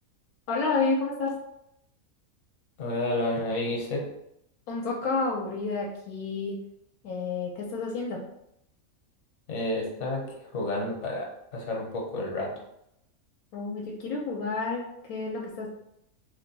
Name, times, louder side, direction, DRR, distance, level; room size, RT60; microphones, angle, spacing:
voice 1, 0.5-1.3 4.7-6.6 7.0-8.2 13.5-15.7, left 3 dB, 80° left, -1 dB, 1.1 m, -30 dB
voice 2, 2.8-4.0 9.5-11.3 11.5-12.5, left 2 dB, 55° left, -1 dB, 1.1 m, -30 dB
2.9 x 2.2 x 3.9 m, 0.79 s
omnidirectional pair, 1.5 m